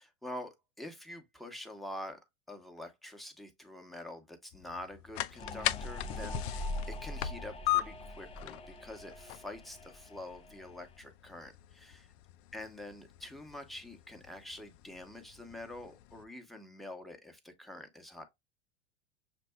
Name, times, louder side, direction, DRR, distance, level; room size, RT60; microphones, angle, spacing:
voice 1, 0.0-2.2 2.5-12.1 12.5-18.2, left 1 dB, ahead, 1.0 m, -46 dB
sound 1, 4.5-16.2, left 14 dB, 60° left, 0.5 m, -40 dB
sound 2, 5.4-10.8, left 1 dB, 15° left, 0.6 m, -42 dB
6.7 x 2.6 x 2.3 m
hypercardioid pair, 95°, 35 cm